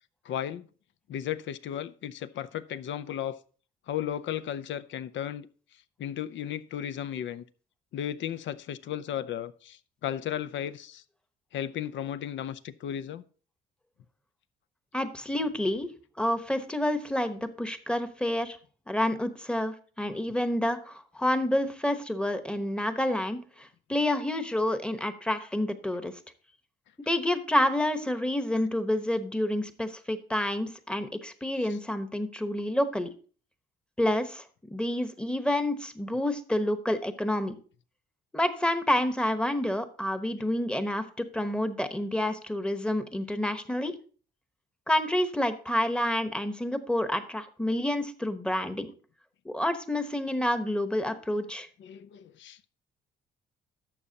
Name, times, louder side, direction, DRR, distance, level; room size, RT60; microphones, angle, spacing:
voice 1, 0.3-0.7 1.1-3.4 3.9-5.5 6.0-7.4 7.9-11.0 11.5-13.2 31.7-31.8 51.8-52.7, left 10 dB, 70° left, 0.6 m, -35 dB
voice 2, 14.9-15.9 16.2-18.6 18.9-26.1 27.1-33.1 34.0-37.5 38.3-43.9 44.9-48.9 49.4-51.7, left 1 dB, 5° left, 1.0 m, -29 dB
12.0 x 7.1 x 2.8 m
cardioid pair, 90°, 20 cm